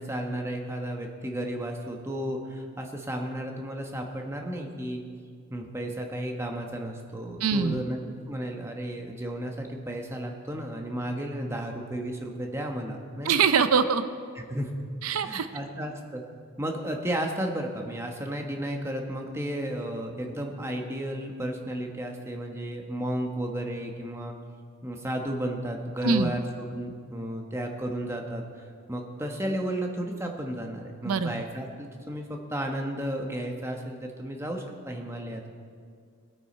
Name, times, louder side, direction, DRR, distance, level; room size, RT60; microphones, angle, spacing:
voice 1, 0.0-5.0 5.5-8.0 8.3-13.3 14.4-14.7 15.2-16.2 16.6-24.4 24.8-28.4 28.9-35.5, right 1 dB, 10° right, 2 dB, 1.1 m, -33 dB
voice 2, 7.4-7.8 13.2-14.0 15.0-15.5 26.0-26.3 31.0-31.4, right 5 dB, 80° right, 11 dB, 0.5 m, -23 dB
21.0 x 9.1 x 4.3 m, 2.2 s
head